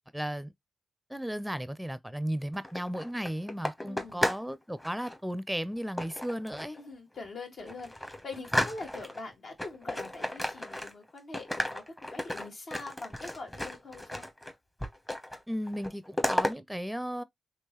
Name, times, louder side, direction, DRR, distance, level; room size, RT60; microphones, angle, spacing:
voice 1, 0.1-0.5 1.1-6.8 15.5-17.2, equal, 5° right, 0.5 m, -35 dB
sound 1, 2.5-4.5 4.8-5.2 6.0-6.8 7.2-7.3 7.7-9.2 9.6-11.1 11.3-14.5 14.8-15.4 15.7-16.5, left 1 dB, 15° left, 0.9 m, -33 dB
voice 2, 3.8-4.3 6.7-14.3, left 3 dB, 65° left, 1.5 m, -43 dB
3.6 x 3.0 x 3.0 m
cardioid pair, 55°, 0 cm